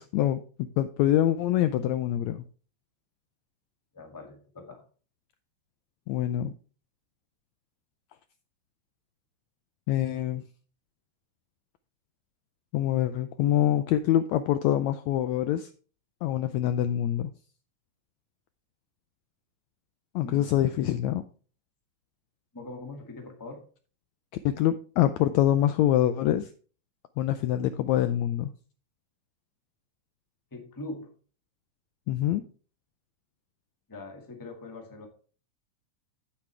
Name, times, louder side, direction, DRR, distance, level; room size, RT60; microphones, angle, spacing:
voice 1, 0.0-2.4 6.1-6.5 9.9-10.4 12.7-15.7 16.2-17.3 20.1-21.2 24.4-26.5 27.2-28.5 32.1-32.4, left 12 dB, 85° left, 11 dB, 1.6 m, -25 dB
voice 2, 3.9-4.8 20.2-20.8 22.5-23.6 30.5-31.1 33.9-35.1, left 2 dB, 10° left, 3 dB, 0.9 m, -42 dB
9.6 x 8.5 x 3.3 m, 0.38 s
omnidirectional pair, 3.7 m